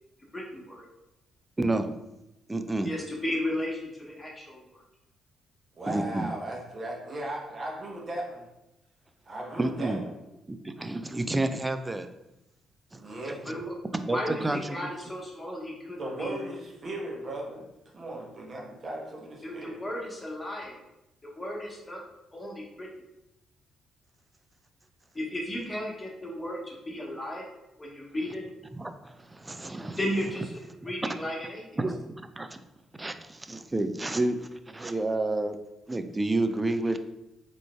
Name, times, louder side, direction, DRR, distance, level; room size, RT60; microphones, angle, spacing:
voice 1, 0.3-0.9 2.8-4.8 13.4-13.7 14.1-16.4 19.4-20.8 21.2-22.0 22.3-22.9 25.1-27.4 27.8-28.4 30.0-31.6, left 1 dB, 20° left, -2 dB, 1.1 m, -34 dB
voice 2, 1.6-1.9 2.5-2.9 5.9-6.3 9.6-10.0 10.5-12.1 12.9-13.0 13.3-13.5 13.9-14.9 28.7-30.0 30.8-30.9 31.8-32.6 33.0-34.4 34.7-35.6 35.9-37.0, right 2 dB, 20° right, 8 dB, 0.3 m, -30 dB
voice 3, 5.8-8.4 9.3-10.0 12.9-13.4 16.0-17.7 17.9-19.8, right 1 dB, 40° right, -2 dB, 1.0 m, -37 dB
3.7 x 3.4 x 2.3 m, 0.91 s
figure-of-eight pair, 40°, 0 cm